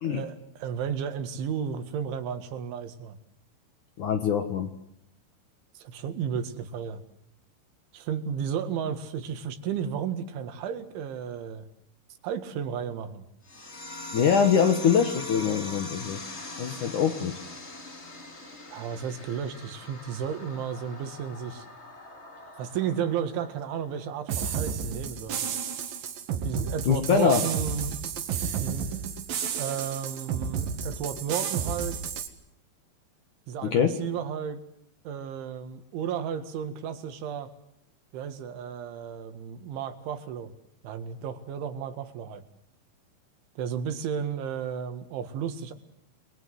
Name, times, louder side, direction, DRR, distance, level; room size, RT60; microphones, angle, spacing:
voice 1, 0.0-3.2 5.8-7.0 7.9-11.7 12.2-13.2 18.7-21.7 22.6-25.5 26.4-28.0 28.6-28.9 29.6-32.0 33.5-34.6 35.1-37.5 38.1-40.5 40.8-42.4 43.6-45.7, right 8 dB, 80° right, 9 dB, 4.2 m, -33 dB
voice 2, 4.0-4.7 14.1-16.2 16.6-17.4 26.9-27.4 33.6-33.9, left 7 dB, 60° left, 7 dB, 2.2 m, -23 dB
sound 1, 13.5-24.5, left 2 dB, 30° left, 1.3 m, -42 dB
sound 2, 24.3-32.3, right 7 dB, 60° right, 3.3 m, -32 dB
29.0 x 22.0 x 8.1 m, 0.76 s
omnidirectional pair, 5.4 m